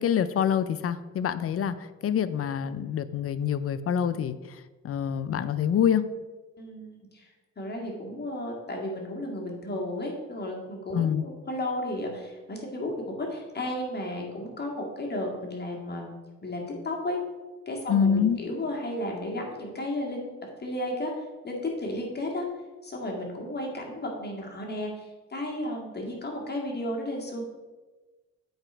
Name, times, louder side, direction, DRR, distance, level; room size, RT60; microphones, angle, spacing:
voice 1, 0.0-1.7 2.0-4.4 4.8-6.0 10.9-11.2 17.9-18.4, left 8 dB, 50° left, 14 dB, 0.5 m, -25 dB
voice 2, 6.6-7.3 7.6-16.1 16.4-17.2 17.7-20.3 20.6-22.5 22.8-27.4, left 1 dB, 35° left, 0 dB, 2.1 m, -33 dB
7.9 x 4.9 x 4.5 m, 1.2 s
cardioid pair, 90°, 30 cm